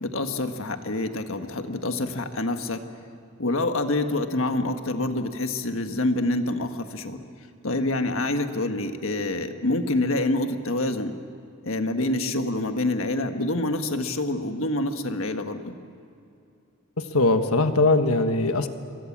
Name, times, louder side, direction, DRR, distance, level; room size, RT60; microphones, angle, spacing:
voice 1, 0.0-2.8 3.4-7.2 7.6-11.1 11.6-15.8, left 2 dB, 65° left, 7 dB, 1.6 m, -26 dB
voice 2, 17.1-18.7, left 2 dB, 85° left, 8 dB, 1.4 m, -20 dB
28.0 x 23.5 x 7.4 m, 2.6 s
head